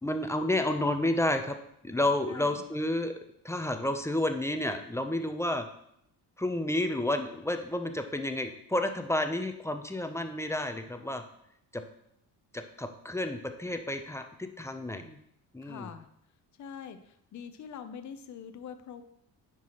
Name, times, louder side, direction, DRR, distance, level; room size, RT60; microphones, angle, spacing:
voice 1, 0.0-1.6 1.8-3.1 3.4-5.7 6.4-11.2 11.7-11.8 12.5-15.2 15.5-15.9, left 1 dB, 5° left, 6 dB, 0.6 m, -30 dB
voice 2, 2.3-2.6 15.6-16.1 16.6-19.0, left 7 dB, 45° left, 9 dB, 0.7 m, -44 dB
9.6 x 4.7 x 3.0 m, 0.74 s
cardioid pair, 95°, 40 cm